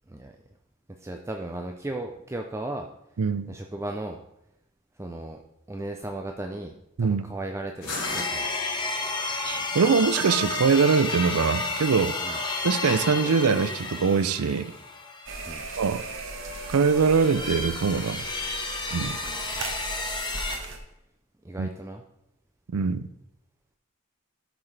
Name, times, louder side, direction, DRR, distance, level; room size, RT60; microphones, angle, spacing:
voice 1, 1.0-2.9 3.5-4.2 5.0-5.4 5.7-6.7 7.0-8.4 9.0-9.2 12.2-12.4 15.5-15.6 19.0-19.4 21.4-22.0, right 2 dB, 15° right, 3 dB, 0.5 m, -36 dB
voice 2, 3.2-3.5 7.0-7.2 9.4-12.1 12.6-14.7 15.8-16.0 16.7-18.2 18.9-19.2 21.6-21.7 22.7-23.1, right 5 dB, 80° right, 13 dB, 0.5 m, -23 dB
sound 1, 7.8-13.0, left 3 dB, 75° left, 3.0 m, -40 dB
sound 2, 8.0-16.0 16.4-20.6, left 3 dB, 20° left, 1.0 m, -32 dB
sound 3, 15.3-20.8, right 3 dB, 60° right, 1.2 m, -38 dB
13.0 x 6.1 x 3.3 m, 0.82 s
head